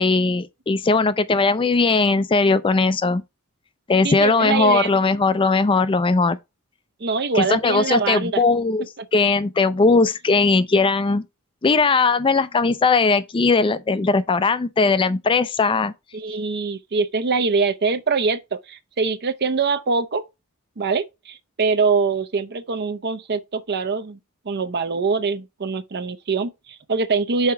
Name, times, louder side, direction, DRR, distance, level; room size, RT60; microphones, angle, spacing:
voice 1, 0.0-3.2 3.9-6.4 7.4-8.9 9.1-11.2 11.6-15.9, left 3 dB, 25° left, 0.4 m, -19 dB
voice 2, 4.0-5.0 7.0-8.4 9.0-9.1 16.1-18.4 18.7-20.2 20.8-24.2 24.5-27.5, right 4 dB, 50° right, 0.6 m, -23 dB
5.6 x 4.4 x 4.5 m
head